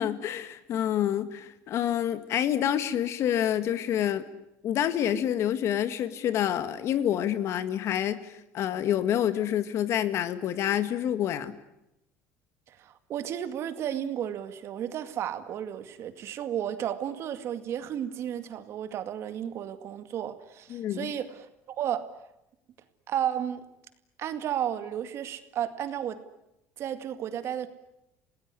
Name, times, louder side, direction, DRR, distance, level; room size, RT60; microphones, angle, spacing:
voice 1, 0.0-4.3 4.6-11.5 20.7-21.1, left 10 dB, 50° left, 12 dB, 1.9 m, -28 dB
voice 2, 12.7-22.0 23.1-23.6 24.2-26.2 26.8-27.7, right 10 dB, 50° right, 10 dB, 2.1 m, -33 dB
29.0 x 18.5 x 9.9 m, 0.86 s
cardioid pair, 135°, 6 cm